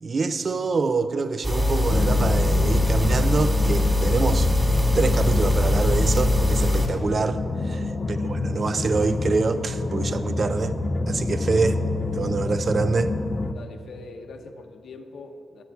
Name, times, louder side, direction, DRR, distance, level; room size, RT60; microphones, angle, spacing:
voice 1, 0.0-4.5 4.9-10.8 11.1-11.8 12.1-13.1, right 4 dB, 40° right, 12 dB, 0.5 m, -25 dB
sound 1, 1.4-6.9, left 2 dB, 15° right, 2.2 m, -21 dB
sound 2, 1.9-13.5, left 2 dB, 35° left, 0.4 m, -28 dB
voice 2, 7.6-8.3 13.5-15.6, left 3 dB, 70° left, 6 dB, 0.9 m, -43 dB
10.0 x 7.9 x 8.4 m, 2.5 s
wide cardioid pair, 130°, 0 cm